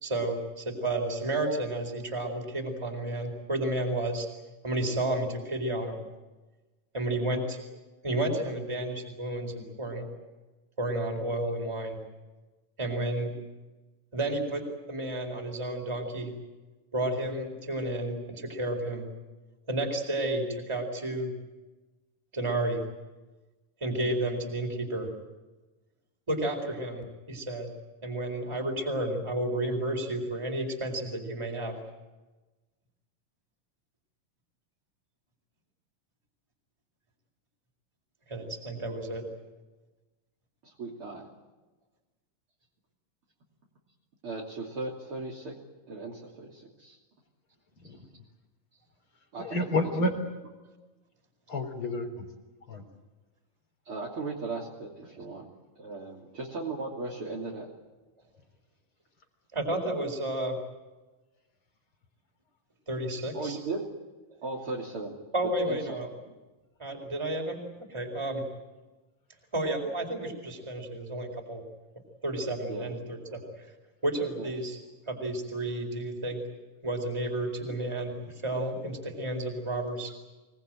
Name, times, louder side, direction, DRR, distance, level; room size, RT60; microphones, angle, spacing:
voice 1, 0.0-4.3 4.6-6.0 6.9-7.6 8.0-10.1 10.8-12.0 12.8-13.3 14.1-16.3 16.9-19.1 19.7-21.3 22.3-22.8 23.8-25.1 26.3-27.7 28.0-31.7 38.3-39.2 59.5-60.6 62.9-63.6 65.3-66.1 66.8-67.6 67.9-68.4 69.5-71.6 72.2-73.7 74.0-74.8 75.1-76.4 76.8-80.1, right 1 dB, 10° right, 3 dB, 4.2 m, -31 dB
voice 2, 40.6-41.3 44.2-45.5 45.9-47.0 49.3-49.6 50.0-50.1 53.9-55.5 55.8-57.7 63.3-63.8 64.4-65.2 65.7-65.8 66.3-66.4 72.7-72.9 74.4-74.5, right 3 dB, 40° right, -3 dB, 3.7 m, -37 dB
voice 3, 49.4-50.1 51.5-52.3 52.7-52.8, left 1 dB, 40° left, 5 dB, 4.3 m, -29 dB
26.5 x 19.5 x 9.1 m, 1.2 s
omnidirectional pair, 3.8 m